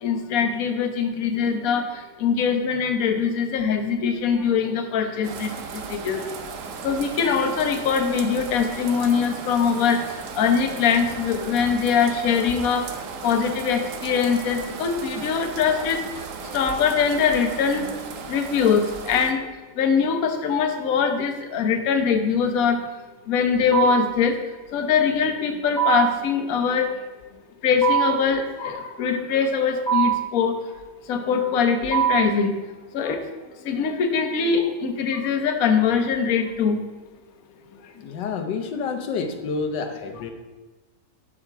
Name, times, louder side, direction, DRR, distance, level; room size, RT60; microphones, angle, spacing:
voice 1, 0.0-6.3 6.8-10.0 10.3-12.8 13.2-16.0 16.5-18.0 18.3-19.4 19.8-22.8 23.3-24.4 24.7-26.9 27.6-30.6 31.1-32.5 32.9-33.2 33.6-36.8, left 6 dB, 60° left, 5 dB, 1.3 m, -22 dB
sound 1, 5.2-19.3, right 5 dB, 60° right, 1.0 m, -36 dB
sound 2, 23.7-24.2 25.8-26.3 27.8-28.3 29.9-30.3 31.9-32.4, right 10 dB, 15° left, 1.3 m, -22 dB
voice 2, 37.9-40.3, left 5 dB, 90° left, 6 dB, 1.5 m, -29 dB
12.0 x 5.1 x 4.6 m, 1.2 s
omnidirectional pair, 1.8 m